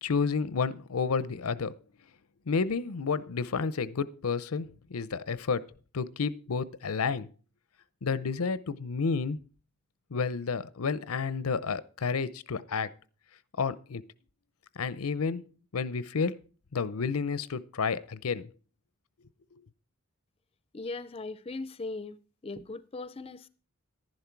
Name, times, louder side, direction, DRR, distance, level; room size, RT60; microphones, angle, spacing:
voice 1, 0.0-1.8 2.5-5.7 5.9-7.3 8.0-9.4 10.1-12.9 13.6-14.0 14.8-15.4 15.7-16.4 16.7-18.5, left 5 dB, 90° left, 0.6 m, -30 dB
voice 2, 20.7-22.2 22.4-23.5, left 3 dB, 25° left, 0.5 m, -38 dB
11.5 x 10.5 x 4.6 m
head